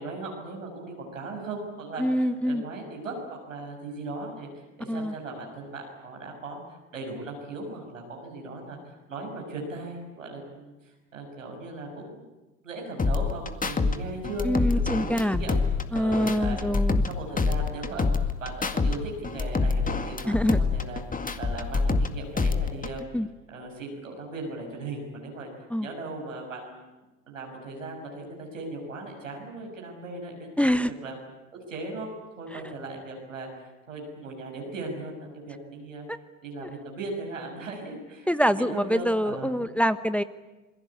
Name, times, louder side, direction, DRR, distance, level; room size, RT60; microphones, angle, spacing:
voice 1, 0.0-12.2 12.6-15.6 15.9-23.0 23.5-25.5 25.8-26.8 27.3-31.2 31.7-32.1 32.4-35.1 35.5-36.1 36.4-39.6, right 2 dB, 90° right, 0 dB, 6.7 m, -38 dB
voice 2, 2.0-2.6 4.9-5.1 14.4-15.5 15.9-17.0 20.2-20.6 23.1-23.3 25.7-25.9 30.6-30.9 32.5-32.6 36.1-36.2 36.6-36.7 38.3-40.2, equal, 5° left, 12 dB, 1.1 m, -25 dB
sound 1, 13.0-14.0 14.2-17.1 17.4-19.0 19.2-22.1 22.4-23.0, left 4 dB, 20° left, 2.1 m, -26 dB
27.5 x 21.5 x 8.6 m, 1.1 s
hypercardioid pair, 65°, 38 cm